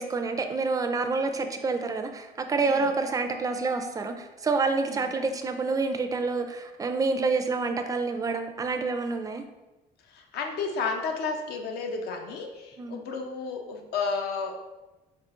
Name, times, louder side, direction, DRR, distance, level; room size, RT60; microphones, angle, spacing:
voice 1, 0.0-9.4 12.8-13.0, right 4 dB, 20° right, 7 dB, 0.4 m, -28 dB
voice 2, 10.1-14.6, left 4 dB, 75° left, 3 dB, 0.6 m, -32 dB
3.6 x 2.4 x 3.7 m, 1.1 s
cardioid pair, 110°, 17 cm